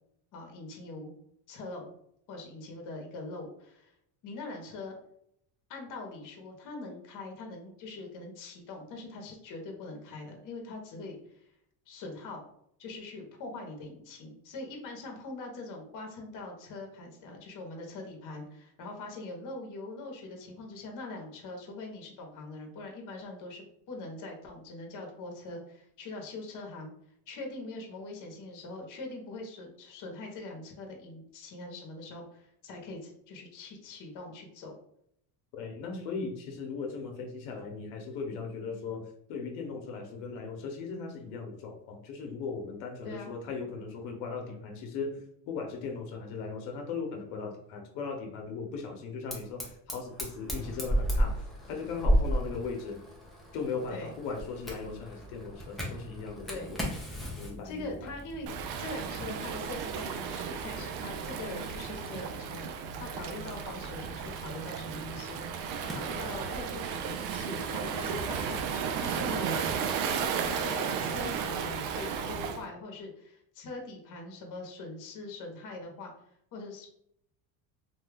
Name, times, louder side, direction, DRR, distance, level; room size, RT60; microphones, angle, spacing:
voice 1, 0.3-1.1 1.5-1.9 2.3-3.9 4.2-5.0 5.7-11.5 11.9-12.4 12.8-26.9 27.3-34.8 43.0-43.3 53.9-54.1 56.5-56.7 57.6-58.5 58.8-69.5 70.0-76.1 76.5-76.9, left 2 dB, 45° left, 2 dB, 0.9 m, -42 dB
voice 2, 35.5-53.0 53.5-56.9 57.4-58.1, left 4 dB, 90° left, 2 dB, 0.8 m, -38 dB
Fire, 49.3-66.6, equal, ahead, 0.4 m, -36 dB
Waves surf, 58.5-72.6, right 7 dB, 75° right, 0.5 m, -34 dB
2.7 x 2.3 x 3.3 m, 0.72 s
cardioid pair, 135°, 44 cm